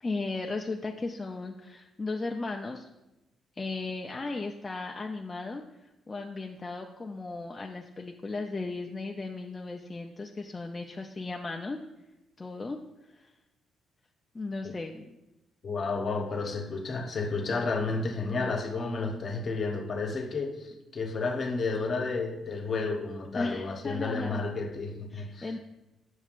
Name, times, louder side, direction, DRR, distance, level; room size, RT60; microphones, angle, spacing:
voice 1, 0.0-2.9 3.6-11.8 12.4-12.8 13.0-13.3 14.3-15.2 16.4-16.6 17.9-18.3 23.3-24.4 25.1-25.6, left 3 dB, 25° left, 0.4 m, -36 dB
voice 2, 15.6-25.6, left 3 dB, 45° left, 0.9 m, -31 dB
7.3 x 6.2 x 2.5 m
cardioid pair, 90°, 0 cm